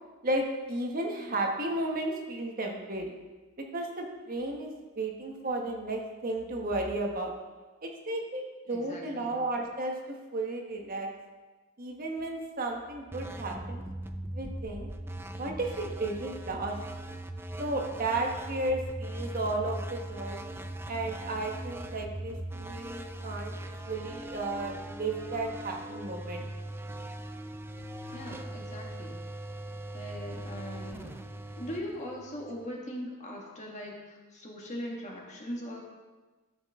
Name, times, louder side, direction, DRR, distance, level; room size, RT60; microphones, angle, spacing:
voice 1, 0.2-3.1 3.7-7.3 7.8-11.1 11.8-13.8 14.3-14.9 15.4-16.7 17.6-20.4 20.9-23.5 23.9-26.5, right 2 dB, 45° right, 1 dB, 1.2 m, -33 dB
voice 2, 8.7-9.4 28.1-29.2 29.9-31.1 31.6-35.8, equal, 35° left, -1 dB, 1.7 m, -40 dB
sound 1, 13.1-32.7, right 1 dB, 10° right, 0.4 m, -40 dB
13.5 x 6.3 x 3.6 m, 1.3 s
head